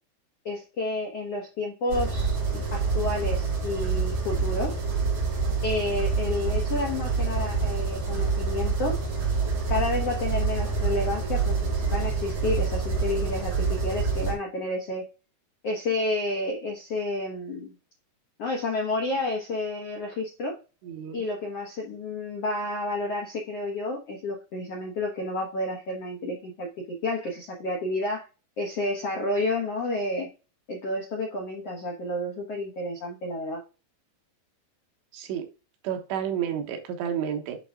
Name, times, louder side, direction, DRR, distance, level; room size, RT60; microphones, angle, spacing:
voice 1, 0.4-4.8 5.6-9.0 9.7-15.0 15.6-17.7 18.4-20.6 21.1-26.7 27.0-28.3 28.6-30.3 30.7-33.6, left 2 dB, 75° left, 1.4 m, -30 dB
sound 1, 1.9-14.3, right 4 dB, 55° right, 4.4 m, -27 dB
voice 2, 20.8-21.2 35.1-35.5 35.8-37.6, right 9 dB, 90° right, 3.5 m, -30 dB
11.0 x 3.9 x 2.3 m
omnidirectional pair, 4.9 m